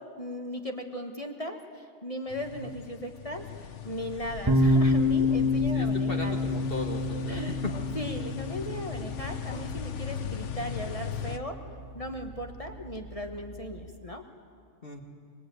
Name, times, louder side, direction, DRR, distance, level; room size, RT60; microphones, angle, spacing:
voice 1, 0.0-6.4 7.3-7.6 7.9-11.6 11.9-14.2, left 1 dB, 30° left, 4 dB, 1.5 m, -37 dB
sound 1, 2.3-11.4, left 8 dB, 75° left, 1.2 m, -38 dB
sound 2, 4.5-13.9, left 2 dB, 20° right, 1.4 m, -29 dB
voice 2, 5.7-7.8 14.8-15.0, left 2 dB, 50° left, 2 dB, 2.1 m, -37 dB
25.0 x 22.0 x 9.4 m, 2.1 s
omnidirectional pair, 1.2 m